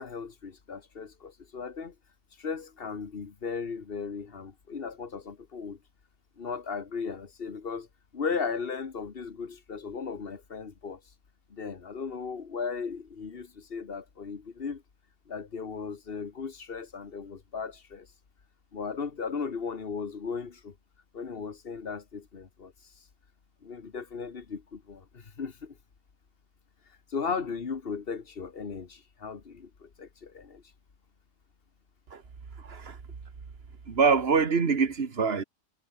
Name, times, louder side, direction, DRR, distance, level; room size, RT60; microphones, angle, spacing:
voice 1, 0.0-2.0 2.4-5.8 6.4-7.9 8.1-11.0 11.5-14.8 15.3-18.1 18.7-20.8 21.1-22.7 23.6-25.8 27.1-30.6, left 5 dB, 55° left, 1.7 m, -36 dB
voice 2, 32.6-33.0 33.9-35.4, right 5 dB, 60° right, 1.8 m, -24 dB
omnidirectional pair, 1.2 m